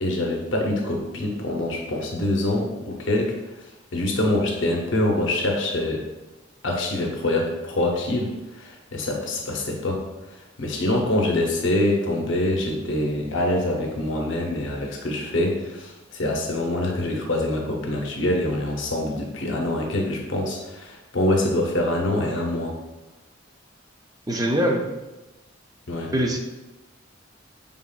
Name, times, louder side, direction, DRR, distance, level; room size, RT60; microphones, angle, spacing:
voice 1, 0.0-3.3 3.9-6.0 6.6-10.0 10.3-22.8 25.9-26.1, left 1 dB, 70° left, 0 dB, 0.7 m, -25 dB
voice 2, 24.3-24.9 26.1-26.4, right 1 dB, 20° right, 2 dB, 0.4 m, -22 dB
5.3 x 3.5 x 2.3 m, 1.1 s
head